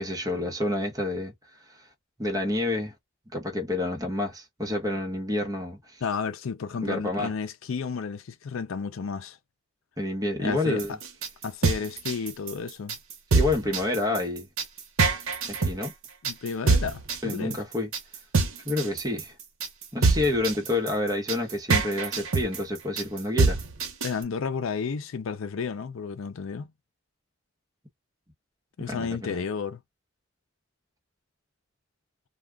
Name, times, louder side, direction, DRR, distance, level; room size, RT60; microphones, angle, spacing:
voice 1, 0.0-1.3 2.2-2.9 3.3-6.0 6.8-7.3 10.0-11.0 13.3-14.5 15.5-15.9 17.2-17.9 18.6-19.3 19.9-23.6 28.9-29.4, left 2 dB, 15° right, 1.0 m, -28 dB
voice 2, 6.0-9.4 10.4-10.8 11.4-13.0 16.2-17.6 24.0-26.7 28.8-29.8, left 5 dB, 75° left, 0.5 m, -32 dB
sound 1, 10.8-24.2, right 4 dB, 85° right, 0.8 m, -25 dB
2.4 x 2.3 x 3.3 m
head